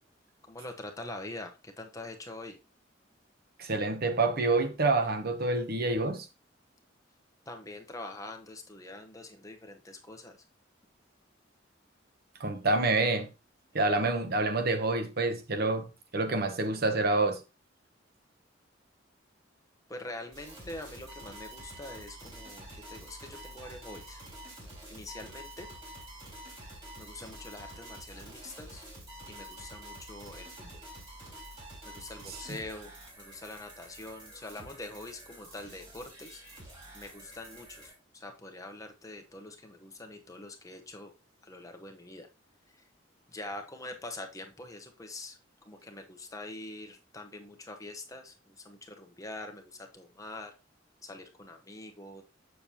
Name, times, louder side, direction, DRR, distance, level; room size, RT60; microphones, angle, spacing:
voice 1, 0.5-2.6 7.5-10.4 19.9-24.2 24.9-25.7 27.0-28.8 29.3-30.8 31.8-36.4 36.9-41.1 41.4-42.3 42.7-42.8 43.3-45.4 45.6-50.5 51.0-52.2, left 2 dB, 20° left, 1.0 m, -44 dB
voice 2, 3.6-6.3 12.4-13.3 13.7-17.4 32.5-32.6, right 2 dB, 55° right, 1.0 m, -27 dB
sound 1, 20.3-37.9, right 1 dB, 25° right, 3.9 m, -48 dB
6.8 x 6.7 x 2.9 m
head